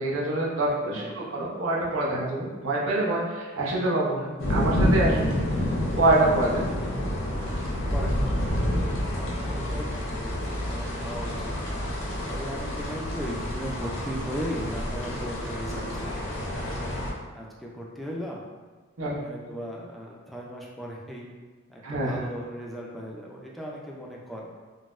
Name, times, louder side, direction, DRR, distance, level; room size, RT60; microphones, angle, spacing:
voice 1, 0.0-5.3 6.0-6.6 7.0-7.1 19.0-19.2 21.8-22.2, right 2 dB, 85° right, -4 dB, 0.7 m, -25 dB
voice 2, 0.6-1.3 6.7-7.1 7.9-11.5 12.3-17.0 17.3-18.4 19.0-21.3 21.7-24.5, equal, ahead, -3 dB, 0.3 m, -37 dB
sound 1, 4.4-17.1, left 1 dB, 70° left, 0.6 m, -28 dB
3.9 x 2.1 x 2.4 m, 1.4 s
head